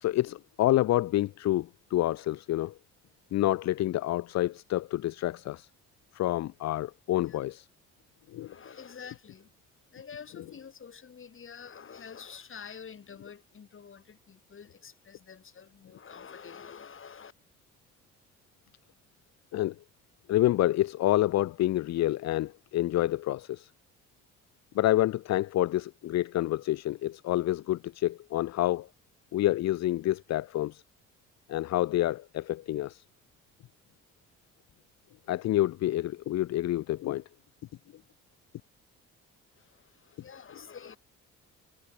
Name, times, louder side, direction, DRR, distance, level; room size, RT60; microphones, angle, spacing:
voice 1, 0.0-2.7 3.3-5.7 6.1-7.7 8.3-8.5 19.5-19.7 20.3-23.7 24.7-28.9 29.3-30.8 31.5-33.0 35.3-37.2, left 15 dB, 60° left, 0.5 m, -28 dB
voice 2, 8.4-9.5 9.9-17.3 39.6-41.0, left 6 dB, 45° left, 3.5 m, -48 dB
cardioid pair, 90°, 30 cm